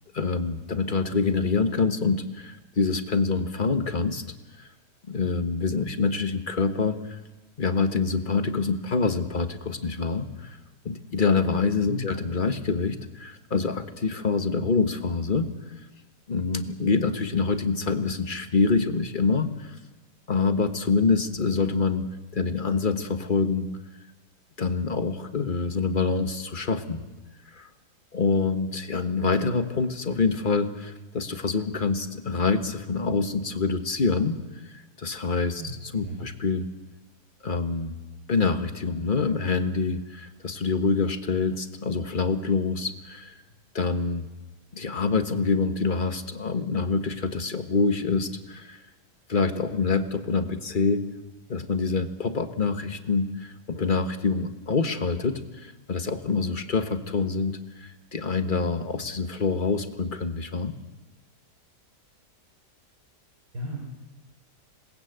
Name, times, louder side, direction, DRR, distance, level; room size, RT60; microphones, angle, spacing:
voice 1, 0.1-4.2 5.1-7.2 7.6-10.6 10.8-15.5 16.3-19.8 20.3-23.7 24.6-27.0 27.6-27.7 28.1-34.4 34.7-35.6 35.9-36.6 37.4-38.0 38.3-43.3 43.7-44.3 44.7-48.8 49.3-51.0 51.5-60.7, left 4 dB, 30° left, 8 dB, 1.5 m, -26 dB
voice 2, 11.9-12.1 35.6-35.7 36.0-36.3 63.5-63.8, equal, 70° right, -1 dB, 5.0 m, -34 dB
27.0 x 20.5 x 8.1 m, 1.1 s
omnidirectional pair, 1.8 m